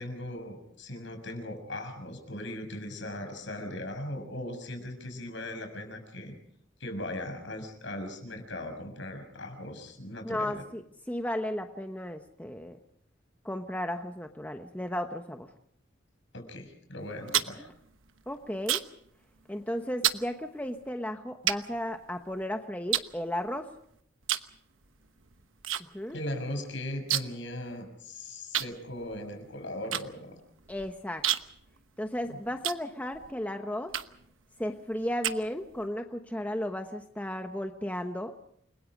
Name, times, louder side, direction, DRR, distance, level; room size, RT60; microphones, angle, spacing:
voice 1, 0.0-6.3 6.8-10.6 16.3-17.7 26.1-30.4 32.2-32.4, left 1 dB, 65° left, 6 dB, 6.6 m, -38 dB
voice 2, 10.2-10.8 11.1-12.8 13.4-15.5 18.3-18.8 19.5-23.7 25.9-26.2 30.7-31.2 32.0-33.9 34.6-38.3, left 1 dB, 10° left, 5 dB, 1.0 m, -34 dB
sound 1, 17.0-19.1 19.4-19.7 20.0-20.3 20.9-21.0 21.5-22.4 22.9-23.8 24.2-24.6 24.8-25.8 26.1-26.2 26.4-27.5 27.8-27.9 28.5-33.3 33.9-34.3 34.8-35.9, right 11 dB, 80° right, 1.1 m, -31 dB
29.5 x 21.5 x 5.0 m, 0.66 s
head